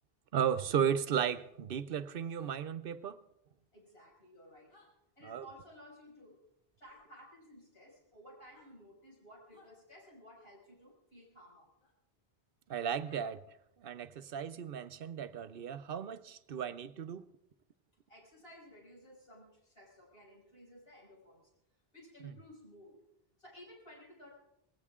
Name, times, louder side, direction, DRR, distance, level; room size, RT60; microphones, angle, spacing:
voice 1, 0.3-3.2 5.2-5.4 12.7-13.4 13.8-17.3, right 8 dB, 65° right, 0.9 m, -35 dB
sound 1, 2.3-2.6 4.7-4.9 6.8-7.0 8.4-8.7 9.5-9.7 11.8-11.9 13.0-13.3, left 2 dB, 50° left, 4.8 m, -63 dB
voice 2, 3.7-4.7 5.2-6.4 6.8-11.7 18.1-21.5 21.9-23.0 23.4-24.3, equal, 70° left, 6.3 m, -56 dB
20.0 x 17.0 x 3.7 m
omnidirectional pair, 1.0 m